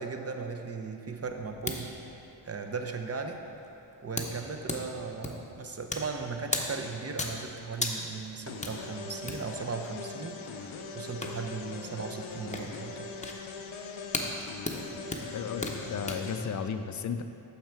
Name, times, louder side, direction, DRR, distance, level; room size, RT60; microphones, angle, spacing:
voice 1, 0.0-1.9 2.4-3.4 4.0-13.1, right 4 dB, 30° right, 4 dB, 0.6 m, -37 dB
sound 1, 1.2-16.2, left 2 dB, 15° left, 0.7 m, -39 dB
sound 2, 8.5-16.5, left 4 dB, 90° left, 0.7 m, -41 dB
voice 2, 15.3-17.2, left 6 dB, 40° left, 9 dB, 0.4 m, -34 dB
6.5 x 5.6 x 4.5 m, 2.9 s
cardioid pair, 60°, 47 cm